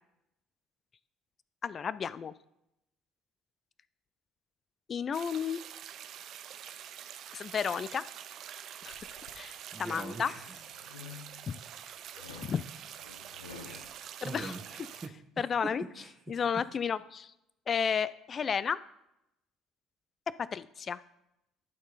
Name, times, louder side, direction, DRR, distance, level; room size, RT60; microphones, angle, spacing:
voice 1, 1.6-2.3 4.9-5.6 7.3-8.0 8.8-10.3 11.1-11.2 11.5-11.6 12.4-12.6 14.2-14.6 15.4-15.8 16.3-17.3 17.7-18.8 20.4-21.0, left 7 dB, 40° left, 17 dB, 0.4 m, -32 dB
sound 1, 5.1-15.1, right 10 dB, 55° right, 0.4 m, -46 dB
sound 2, 8.9-9.4 10.0-11.6 12.2-13.9, left 6 dB, 85° left, 0.7 m, -50 dB
voice 2, 9.7-10.6 13.6-13.8 14.2-15.1 15.6-16.4, right 3 dB, 25° right, 0 dB, 1.1 m, -43 dB
11.5 x 4.5 x 4.0 m, 0.84 s
hypercardioid pair, 60°, 0 cm